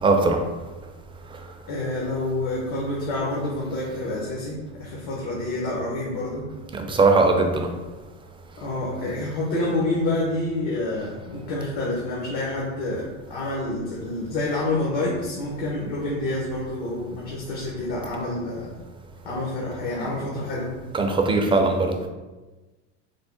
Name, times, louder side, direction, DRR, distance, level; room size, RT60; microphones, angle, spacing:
voice 1, 0.0-0.4 6.7-7.7 20.9-22.0, right 3 dB, 15° right, 3 dB, 0.3 m, -19 dB
voice 2, 1.7-6.5 8.6-18.7 19.2-20.7, left 2 dB, 70° left, -4 dB, 1.0 m, -28 dB
3.6 x 2.1 x 3.8 m, 1.2 s
supercardioid pair, 105°, 35 cm